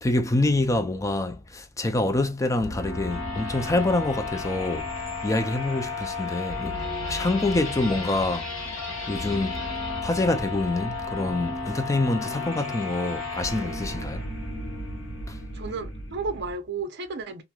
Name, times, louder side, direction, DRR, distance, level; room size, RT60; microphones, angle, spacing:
voice 1, 0.0-4.9 5.2-8.5 9.1-9.7 10.0-14.2 15.3-15.4, left 2 dB, 15° left, 0.4 m, -26 dB
sound 1, 2.6-16.5, left 3 dB, 80° left, 1.3 m, -33 dB
voice 2, 15.5-17.4, right 4 dB, 60° right, 0.6 m, -33 dB
3.0 x 2.5 x 2.2 m
head